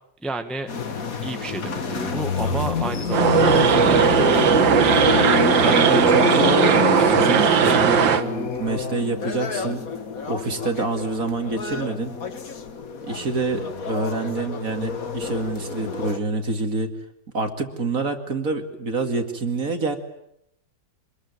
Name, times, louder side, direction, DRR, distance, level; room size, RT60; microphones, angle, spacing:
voice 1, 0.2-0.7 1.2-4.9 5.6-5.8 6.4-6.5 7.0-7.8, right 1 dB, ahead, 6 dB, 1.4 m, -31 dB
sound 1, 0.7-16.2, left 5 dB, 50° left, 2.0 m, -27 dB
sound 2, 3.1-8.2, right 7 dB, 90° right, 2.2 m, -18 dB
voice 2, 5.6-9.8 10.3-12.1 13.1-16.9 17.3-20.0, right 3 dB, 50° right, 6 dB, 2.7 m, -27 dB
26.0 x 21.0 x 9.6 m, 0.76 s
omnidirectional pair, 2.0 m